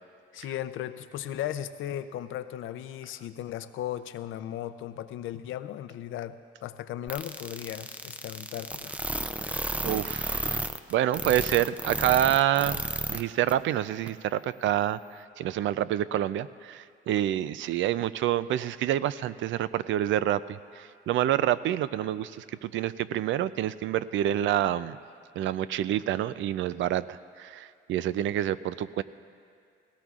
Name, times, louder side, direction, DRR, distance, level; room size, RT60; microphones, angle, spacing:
voice 1, 0.3-9.0, left 11 dB, 80° left, 12 dB, 0.6 m, -36 dB
sound 1, 7.1-13.2 13.5-13.6 14.1-14.2, right 1 dB, 5° right, 0.5 m, -32 dB
voice 2, 9.8-10.6 10.9-12.8 13.1-25.0 25.4-29.0, right 12 dB, 75° right, 15 dB, 0.4 m, -27 dB
18.0 x 17.5 x 2.4 m, 2.3 s
cardioid pair, 90°, 20 cm